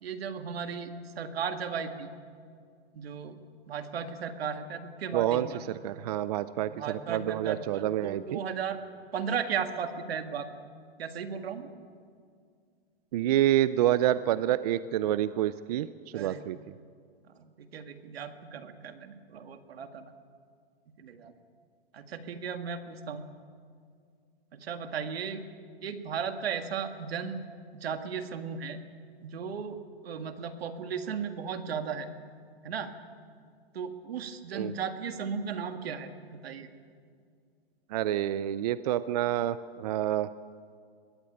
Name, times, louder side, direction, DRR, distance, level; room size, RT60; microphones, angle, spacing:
voice 1, 0.0-2.1 2.9-3.4 3.7-5.6 6.7-8.8 9.1-10.6 11.0-11.7 16.1-16.4 17.3-20.1 21.0-21.3 21.9-23.3 24.5-25.4 25.8-27.4 27.7-28.8 29.2-32.1 32.6-32.9 33.7-36.7, right 6 dB, 75° right, 7 dB, 2.0 m, -36 dB
voice 2, 5.1-8.4 13.1-15.9 16.1-16.6 34.5-34.7 37.9-40.3, right 12 dB, 40° right, 15 dB, 0.5 m, -28 dB
21.5 x 16.0 x 8.7 m, 2.2 s
hypercardioid pair, 155°, 31 cm